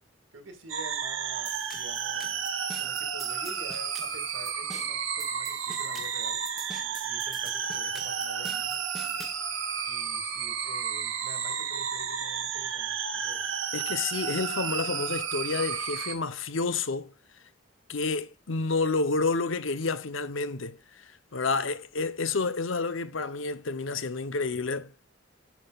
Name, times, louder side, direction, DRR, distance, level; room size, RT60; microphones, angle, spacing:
voice 1, 0.3-6.4 7.0-8.8 9.8-13.4 21.6-21.7, right 2 dB, 70° right, 2.3 m, -48 dB
sound 1, 0.7-16.2, right 7 dB, 85° right, 1.4 m, -32 dB
sound 2, 1.5-9.4, equal, ahead, 1.1 m, -47 dB
voice 2, 13.7-17.1 17.9-24.9, left 4 dB, 85° left, 0.8 m, -30 dB
10.5 x 5.9 x 2.4 m
head